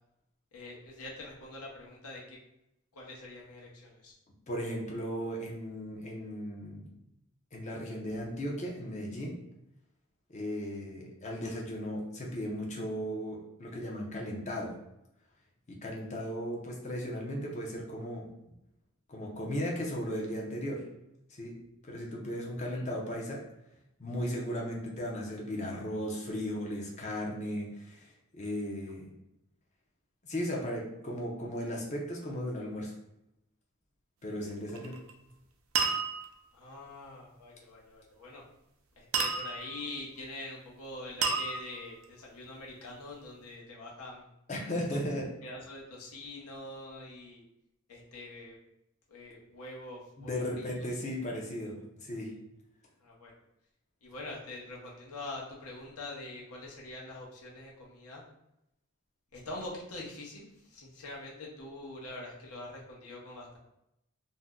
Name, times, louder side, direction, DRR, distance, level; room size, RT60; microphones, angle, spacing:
voice 1, 0.5-2.4 2.9-4.1 22.7-22.8 36.5-38.4 39.0-44.3 45.4-47.4 47.9-48.6 49.1-50.4 53.0-53.3 54.0-58.2 59.3-63.6, left 2 dB, 80° left, -3 dB, 0.9 m, -44 dB
voice 2, 4.5-6.9 7.5-9.3 10.3-14.7 15.7-18.3 19.1-20.8 21.3-21.5 21.8-23.4 24.0-29.1 30.3-32.9 34.2-35.0 44.5-45.3 50.3-52.3, equal, 35° left, -2 dB, 0.6 m, -36 dB
sound 1, 34.7-35.1 35.8-36.5 39.1-39.9 41.2-42.0, right 5 dB, 65° right, 0.4 m, -31 dB
2.7 x 2.1 x 3.5 m, 0.85 s
head